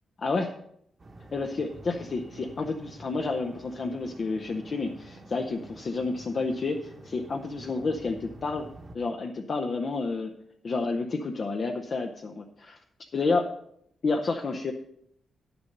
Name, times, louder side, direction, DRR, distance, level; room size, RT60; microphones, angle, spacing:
voice 1, 0.2-0.5 1.3-8.7 8.9-10.3 10.6-12.8 13.1-13.6 14.0-14.7, left 3 dB, 40° left, 3 dB, 0.7 m, -30 dB
sound 1, 1.0-9.0, right 1 dB, 30° right, 1.1 m, -49 dB
10.5 x 6.8 x 5.3 m, 0.71 s
wide cardioid pair, 155°, 0 cm